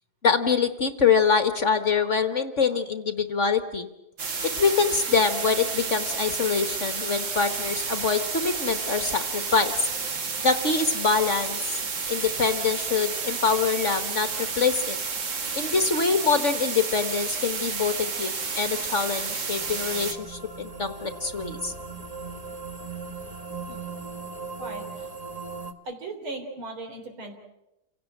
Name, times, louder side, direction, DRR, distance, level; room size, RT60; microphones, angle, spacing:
voice 1, 0.2-3.9 4.6-9.7 10.4-11.6 12.1-15.0 15.5-21.7, left 5 dB, 45° left, 9 dB, 1.2 m, -25 dB
sound 1, 4.2-20.1, right 5 dB, 65° right, 2.8 m, -31 dB
sound 2, 17.2-25.7, right 4 dB, 25° right, 1.1 m, -39 dB
voice 2, 24.6-25.1 25.8-27.4, right 2 dB, 90° right, 4 dB, 4.4 m, -38 dB
28.0 x 17.0 x 8.9 m, 0.92 s
omnidirectional pair, 2.2 m